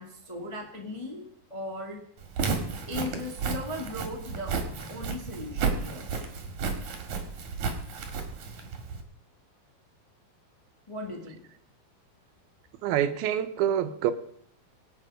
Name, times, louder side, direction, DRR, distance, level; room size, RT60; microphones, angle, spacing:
voice 1, 0.0-2.1 2.9-6.3 10.9-11.5, left 1 dB, 15° left, 1.3 m, -38 dB
Walk footsteps, 2.2-9.0, right 5 dB, 55° right, 3.2 m, -32 dB
voice 2, 12.8-14.1, right 10 dB, 85° right, 2.8 m, -26 dB
24.5 x 8.8 x 5.0 m
omnidirectional pair, 4.3 m